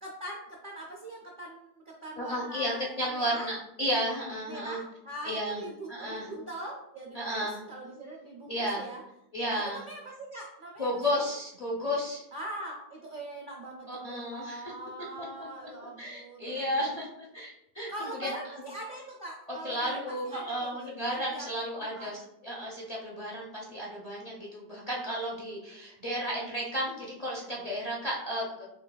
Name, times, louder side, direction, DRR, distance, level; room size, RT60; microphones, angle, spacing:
voice 1, 0.0-3.5 4.5-9.0 9.5-11.2 12.3-16.9 17.9-20.8 21.3-21.5 21.8-22.1, right 1 dB, 85° right, -2 dB, 0.4 m, -42 dB
voice 2, 2.2-4.8 5.2-5.6 5.9-6.3 7.1-7.6 8.5-8.8 9.3-9.8 10.8-12.2 13.9-14.7 15.2-15.5 16.0-17.1 17.3-17.9 18.2-18.3 19.5-28.6, equal, 40° left, -4 dB, 0.5 m, -33 dB
6.4 x 2.4 x 2.2 m, 0.82 s
omnidirectional pair, 1.7 m